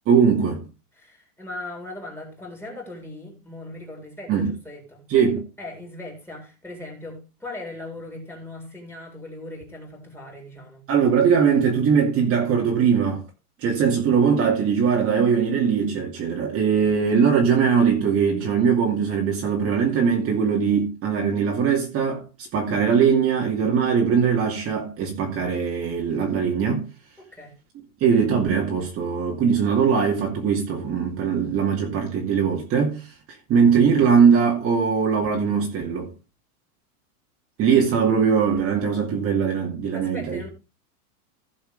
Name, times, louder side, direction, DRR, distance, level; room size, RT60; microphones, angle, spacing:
voice 1, 0.1-0.7 4.3-4.5 5.1-5.4 10.9-13.2 13.6-26.9 28.0-33.1 33.5-36.1 37.6-40.4, right 6 dB, 30° right, 2.4 m, -21 dB
voice 2, 1.0-5.1 5.6-10.8 27.3-27.5 39.9-40.5, left 2 dB, 5° left, 4.1 m, -39 dB
16.5 x 6.8 x 3.4 m
supercardioid pair, 140°, 45 cm